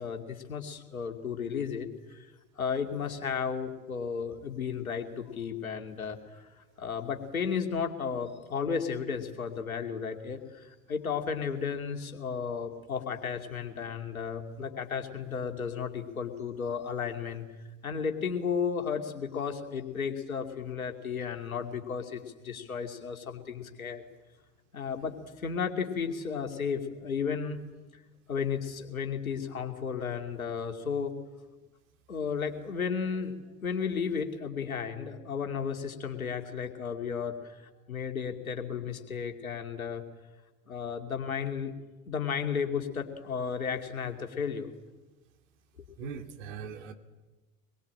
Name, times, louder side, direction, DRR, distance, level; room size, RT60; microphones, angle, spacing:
voice 1, 0.0-17.4 17.8-24.0 24.7-27.6 28.3-31.1 32.1-33.4 33.6-40.0 40.7-41.7 42.1-44.7, left 6 dB, 80° left, 5 dB, 2.5 m, -34 dB
voice 2, 46.0-46.9, right 6 dB, 55° right, 6 dB, 2.7 m, -40 dB
25.0 x 21.5 x 8.7 m, 1.2 s
figure-of-eight pair, 70°, 42 cm